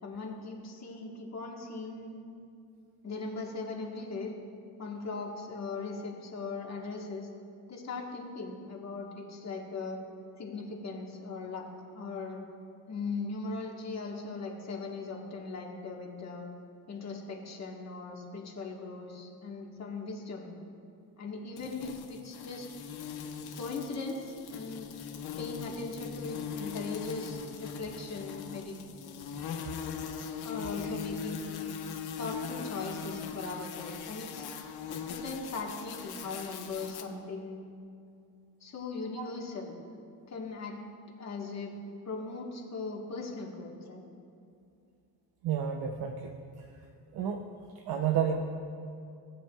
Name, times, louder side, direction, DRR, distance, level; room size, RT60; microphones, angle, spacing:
voice 1, 0.0-2.1 3.0-4.3 4.8-7.3 7.7-10.0 10.4-11.6 11.9-12.4 12.9-16.4 16.9-20.5 21.2-22.7 23.6-24.9 25.4-28.7 30.4-31.6 32.2-34.4 35.1-37.6 38.6-39.7 40.3-40.8 41.2-41.7 42.0-44.0, left 3 dB, 40° left, -1 dB, 1.6 m, -39 dB
sound 1, 21.6-37.0, left 6 dB, 65° left, 1.1 m, -40 dB
voice 2, 45.4-46.3 47.1-47.5 47.9-48.4, right 8 dB, 65° right, 4 dB, 0.8 m, -30 dB
19.5 x 7.1 x 2.4 m, 2.5 s
cardioid pair, 100°, 41 cm